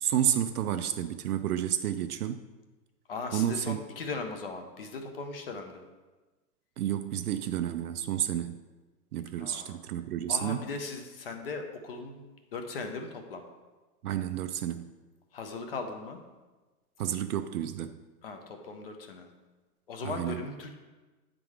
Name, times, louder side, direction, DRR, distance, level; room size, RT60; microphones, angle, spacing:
voice 1, 0.0-2.4 3.3-3.8 6.8-8.6 9.1-10.6 14.0-14.9 17.0-18.0 20.0-20.4, right 10 dB, 65° right, 9 dB, 0.5 m, -30 dB
voice 2, 3.1-5.8 9.4-9.8 10.3-13.4 15.3-16.2 18.2-19.3 19.9-20.7, left 4 dB, 40° left, 5 dB, 0.6 m, -38 dB
8.8 x 3.8 x 4.7 m, 1.2 s
hypercardioid pair, 170°, 48 cm